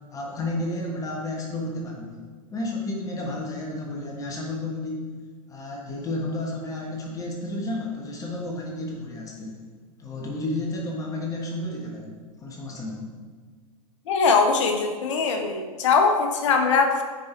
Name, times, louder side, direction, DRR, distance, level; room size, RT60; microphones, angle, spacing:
voice 1, 0.1-2.2 2.5-5.1 5.5-9.6 10.0-12.1 12.4-13.0, left 2 dB, 20° left, -1 dB, 1.4 m, -31 dB
voice 2, 14.1-17.0, left 4 dB, 55° left, 4 dB, 1.3 m, -21 dB
9.2 x 5.6 x 4.6 m, 1.5 s
figure-of-eight pair, 105°, 19 cm